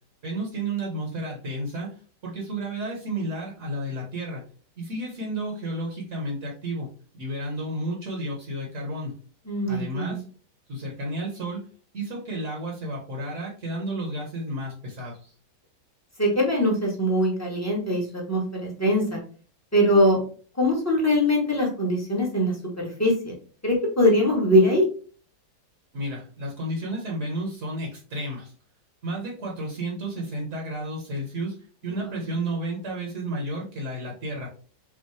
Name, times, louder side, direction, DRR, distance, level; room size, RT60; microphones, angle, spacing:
voice 1, 0.2-1.9 2.2-4.4 4.8-6.9 7.1-9.1 9.7-10.2 10.7-11.6 11.9-15.3 25.9-28.5 29.0-31.5 31.8-34.5, right 1 dB, 45° right, -2 dB, 1.5 m, -32 dB
voice 2, 9.5-10.2 16.2-19.2 19.7-20.2 20.6-23.3 23.6-24.8 31.8-32.4, left 1 dB, 10° left, -3 dB, 1.1 m, -22 dB
5.5 x 2.4 x 3.3 m, 0.40 s
omnidirectional pair, 1.9 m